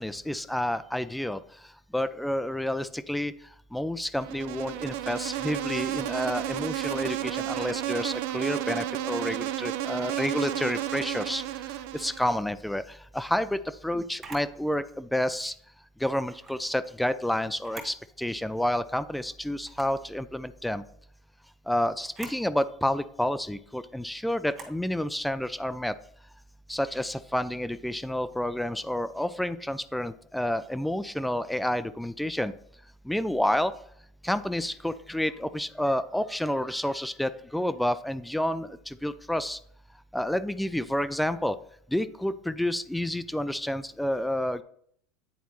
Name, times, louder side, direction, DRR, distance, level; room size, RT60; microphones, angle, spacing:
voice 1, 0.0-1.4 1.9-3.3 3.7-11.4 11.9-15.5 16.0-20.8 21.7-25.9 26.7-32.5 33.1-33.7 34.2-39.6 40.1-41.6 41.9-44.6, left 1 dB, 5° left, 14 dB, 0.3 m, -29 dB
Insect, 4.1-12.4, right 13 dB, 70° right, 0.4 m, -32 dB
Camera, 14.2-14.5 16.3-16.6 17.5-18.0 18.5-18.6 19.6-20.0 22.0-22.4 24.5-24.8, right 4 dB, 30° right, 1.6 m, -44 dB
9.3 x 4.1 x 3.0 m, 0.64 s
supercardioid pair, 105°, 0 cm